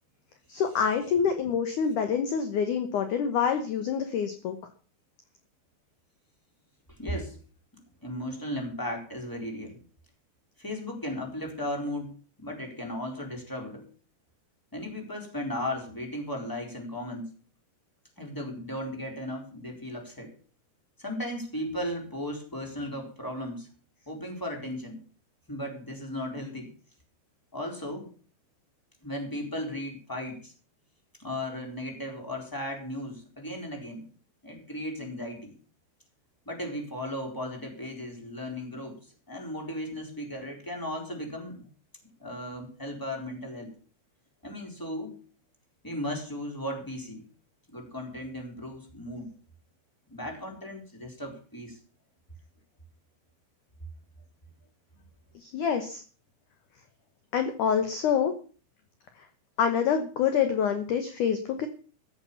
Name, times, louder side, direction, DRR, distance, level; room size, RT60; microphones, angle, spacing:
voice 1, 0.5-4.6 55.4-56.0 57.3-58.3 59.6-61.7, left 7 dB, 65° left, 8 dB, 2.0 m, -26 dB
voice 2, 7.0-7.4 8.0-9.8 10.6-12.1 12.4-13.9 14.7-17.3 18.2-20.3 21.0-23.7 24.1-25.0 25.5-26.7 27.5-28.1 29.0-30.5 31.2-34.0 34.4-35.5 36.5-41.6 42.2-43.8 44.4-45.1 45.8-47.2 47.7-49.3 50.1-51.8, left 1 dB, 5° left, 2 dB, 3.5 m, -36 dB
14.5 x 8.5 x 7.1 m, 0.41 s
omnidirectional pair, 5.1 m